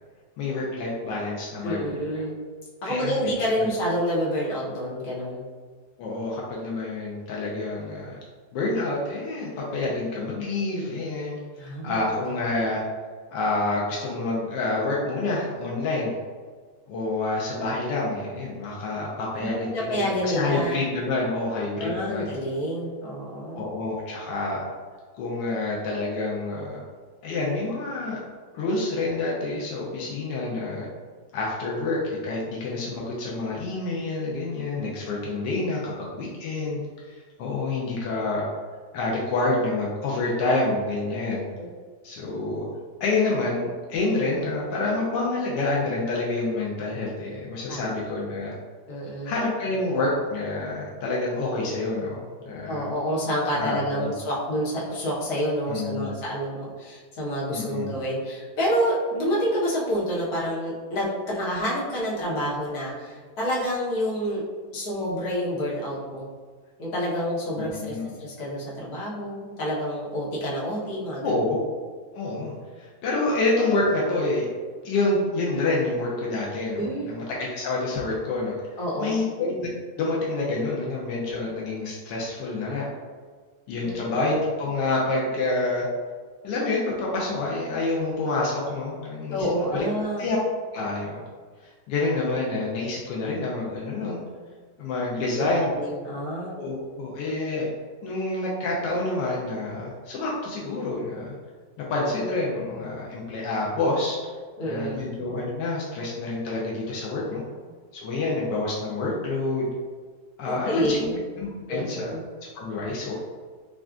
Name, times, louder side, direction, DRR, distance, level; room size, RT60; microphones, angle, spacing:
voice 1, 0.4-1.9 2.8-3.2 3.6-3.7 6.0-8.2 8.5-12.8 13.3-16.1 16.9-22.4 23.5-24.6 25.2-26.8 27.2-28.2 28.5-30.9 31.3-36.8 37.1-38.5 38.9-41.4 42.0-42.7 43.0-48.5 49.2-52.9 53.6-54.1 55.7-56.1 57.5-57.9 67.7-68.1 71.2-71.6 72.1-74.5 74.8-78.5 79.0-79.7 80.0-82.9 83.7-85.9 86.4-89.8 90.2-90.4 90.7-91.2 91.6-94.2 94.8-95.7 96.6-97.7 98.0-101.3 101.9-104.2 104.7-107.4 107.9-109.7 110.4-111.0 111.4-112.1 112.5-113.1, left 2 dB, 85° left, -4 dB, 1.3 m, -28 dB
voice 2, 1.6-2.3 2.8-5.4 11.6-12.0 19.4-20.8 21.8-23.6 41.5-41.7 47.7-48.0 48.9-49.3 52.7-64.4 64.7-66.3 66.8-71.4 76.7-77.2 78.8-79.2 83.8-84.0 89.3-90.3 95.4-96.6 104.6-105.0 110.4-111.2 111.7-112.2, equal, 65° left, -6 dB, 1.5 m, -28 dB
5.7 x 2.4 x 2.4 m, 1.5 s
omnidirectional pair, 1.9 m